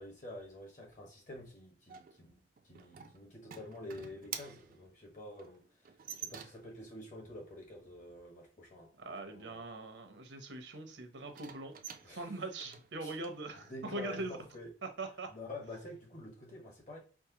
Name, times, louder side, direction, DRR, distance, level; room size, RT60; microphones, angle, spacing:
voice 1, 0.0-9.7 12.0-12.3 13.0-14.7 15.3-17.0, left 1 dB, 45° left, 1.4 m, -48 dB
sound 1, 1.9-6.8 11.3-14.3, right 8 dB, 50° right, 0.4 m, -49 dB
voice 2, 9.0-11.7 12.1-14.4 14.8-15.3, right 2 dB, 80° right, 0.8 m, -42 dB
4.6 x 2.0 x 2.9 m
head